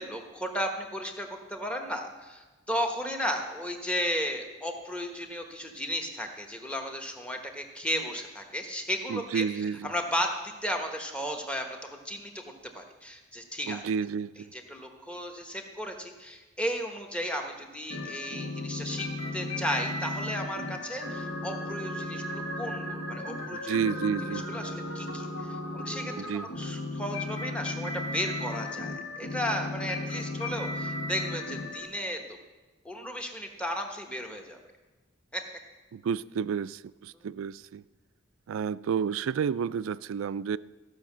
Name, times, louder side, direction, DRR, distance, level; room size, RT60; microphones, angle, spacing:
voice 1, 0.0-9.5 9.8-13.8 14.5-19.1 19.3-24.0 24.3-26.1 26.4-32.4 32.8-34.6 35.3-35.4, equal, 5° left, 1.1 m, -34 dB
voice 2, 9.1-9.9 13.7-14.5 23.5-24.5 26.2-26.5 35.9-37.8 38.5-40.6, right 7 dB, 85° right, 0.3 m, -31 dB
sound 1, 17.9-31.9, left 2 dB, 75° left, 1.8 m, -35 dB
14.5 x 5.8 x 7.3 m
head